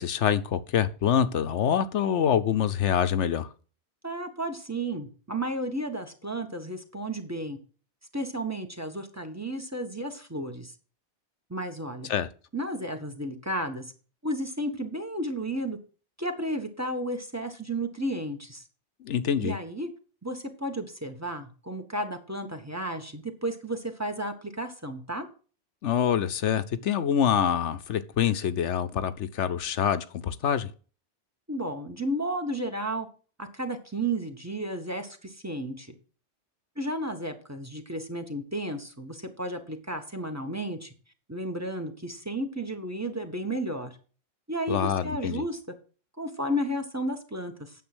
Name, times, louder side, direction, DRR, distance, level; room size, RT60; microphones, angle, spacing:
voice 1, 0.0-3.5 12.1-12.3 19.0-19.5 25.8-30.7 44.7-45.4, left 9 dB, 80° left, 12 dB, 1.1 m, -25 dB
voice 2, 4.0-7.6 8.1-10.7 11.5-12.1 12.5-13.9 14.2-15.8 16.2-18.6 19.4-19.9 20.2-25.3 31.5-33.1 33.4-35.9 36.8-40.9 41.3-44.0 44.5-45.6 46.2-47.7, right 1 dB, 15° right, 7 dB, 1.5 m, -33 dB
9.4 x 7.3 x 6.2 m, 0.38 s
omnidirectional pair, 1.2 m